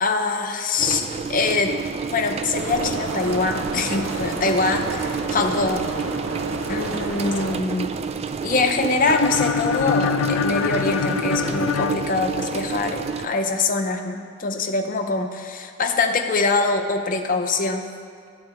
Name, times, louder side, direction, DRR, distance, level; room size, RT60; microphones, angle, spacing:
voice 1, 0.0-1.8 2.1-5.9 6.7-8.0 8.4-17.9, left 3 dB, 40° left, 5 dB, 0.7 m, -24 dB
sound 1, 0.8-13.3, right 5 dB, 30° right, 0.3 m, -29 dB
sound 2, 2.6-7.6, right 2 dB, 70° right, 1.0 m, -31 dB
sound 3, 9.0-12.9, left 6 dB, 85° left, 0.4 m, -25 dB
11.5 x 3.9 x 7.9 m, 2.1 s
head